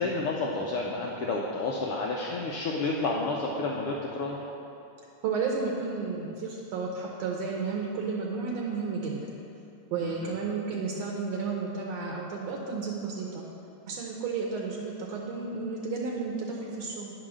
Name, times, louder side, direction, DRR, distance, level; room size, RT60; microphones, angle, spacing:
voice 1, 0.0-4.4 10.0-10.3, left 3 dB, 85° left, -2 dB, 1.2 m, -30 dB
voice 2, 5.2-9.3 9.9-13.5 13.9-17.1, right 4 dB, 70° right, -1 dB, 1.8 m, -32 dB
9.9 x 4.8 x 6.2 m, 2.7 s
omnidirectional pair, 3.3 m